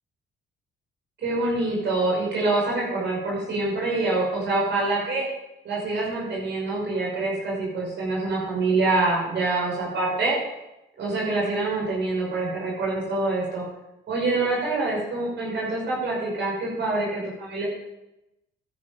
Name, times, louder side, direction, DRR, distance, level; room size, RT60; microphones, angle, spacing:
voice 1, 1.2-5.2 5.6-10.4 11.0-13.6 14.1-17.7, right 2 dB, 65° right, -4 dB, 6.0 m, -25 dB
12.5 x 11.0 x 5.2 m, 0.93 s
cardioid pair, 90°, 20 cm